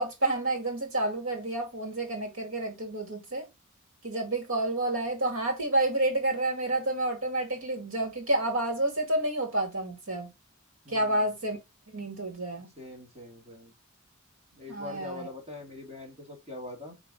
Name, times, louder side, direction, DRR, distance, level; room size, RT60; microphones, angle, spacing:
voice 1, 0.0-3.5 4.0-10.3 10.9-11.6 11.9-12.7 14.7-15.3, right 1 dB, 80° right, 2.4 m, -29 dB
voice 2, 10.8-11.3 12.8-13.7 14.6-16.9, left 2 dB, 30° right, 2.3 m, -43 dB
4.7 x 4.0 x 5.3 m
head